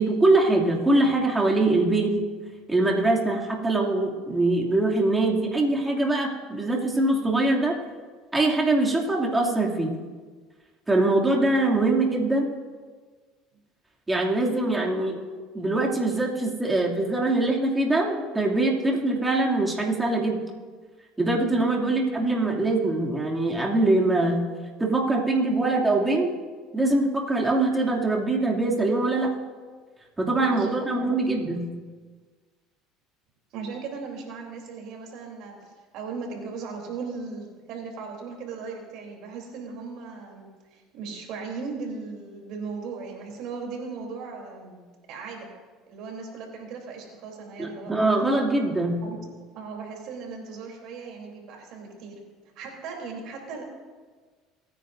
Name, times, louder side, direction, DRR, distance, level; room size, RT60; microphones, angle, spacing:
voice 1, 0.0-2.2 2.7-7.8 8.3-9.9 10.9-12.5 14.1-15.2 15.5-20.4 21.2-24.5 24.8-26.3 26.7-29.3 30.2-31.7 47.6-49.0, right 2 dB, 15° right, -2 dB, 2.7 m, -23 dB
voice 2, 21.8-22.1 30.4-31.1 33.5-44.8 45.1-45.5 45.9-47.9 49.0-49.3 49.5-53.6, right 4 dB, 65° right, 1 dB, 3.5 m, -37 dB
26.0 x 9.7 x 2.7 m, 1.5 s
supercardioid pair, 90°, 0 cm